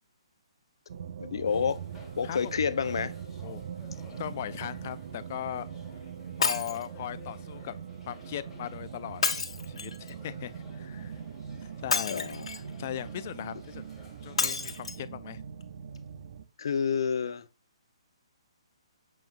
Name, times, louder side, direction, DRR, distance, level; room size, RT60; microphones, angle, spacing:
sound 1, 0.9-16.4, right 8 dB, 35° right, 0.6 m, -42 dB
voice 1, 1.2-1.8 2.2-3.1 4.1-4.2 12.1-12.5 16.6-17.5, left 6 dB, 50° left, 0.8 m, -29 dB
sound 2, 1.4-14.7, equal, 5° left, 1.9 m, -53 dB
voice 2, 4.2-5.7 6.4-7.8 8.1-11.1 11.6-13.8 14.2-15.4, left 11 dB, 25° left, 0.4 m, -39 dB
Shatter, 6.4-6.9 9.2-10.1 11.9-12.7 14.4-15.0 15.6-15.7 16.0-16.1, left 5 dB, 75° left, 1.5 m, -29 dB
7.6 x 7.2 x 2.5 m
hypercardioid pair, 180°, 3 cm